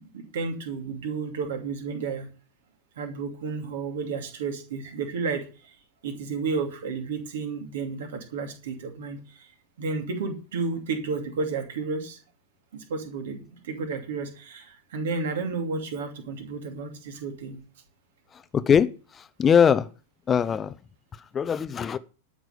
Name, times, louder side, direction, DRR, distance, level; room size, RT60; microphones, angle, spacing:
voice 1, 0.0-2.3 3.0-5.8 6.0-9.5 9.8-12.2 12.7-17.6, right 4 dB, 60° right, 2.7 m, -32 dB
voice 2, 18.5-18.9 19.4-19.9 20.3-20.7 21.3-22.0, left 7 dB, 20° left, 0.7 m, -20 dB
12.0 x 6.2 x 6.8 m
figure-of-eight pair, 90°, 0 cm